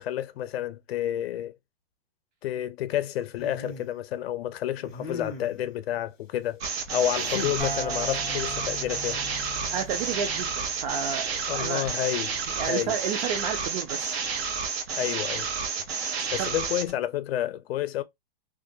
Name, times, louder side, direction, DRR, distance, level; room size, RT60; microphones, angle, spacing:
voice 1, 0.0-1.6 2.4-9.2 11.5-12.4 12.7-12.9 14.9-15.5 16.3-18.0, left 11 dB, 80° left, 0.5 m, -30 dB
sound 1, 3.4-3.9 4.8-5.7 7.2-7.7 9.6-10.1, left 3 dB, 15° left, 0.3 m, -39 dB
sound 2, 6.6-16.9, right 5 dB, 90° right, 0.9 m, -30 dB
sound 3, 7.6-11.2, equal, 70° right, 1.2 m, -39 dB
voice 2, 9.7-11.9 12.6-14.2 16.4-16.6, right 7 dB, 50° right, 0.6 m, -31 dB
2.5 x 2.2 x 2.6 m
supercardioid pair, 170°, 30 cm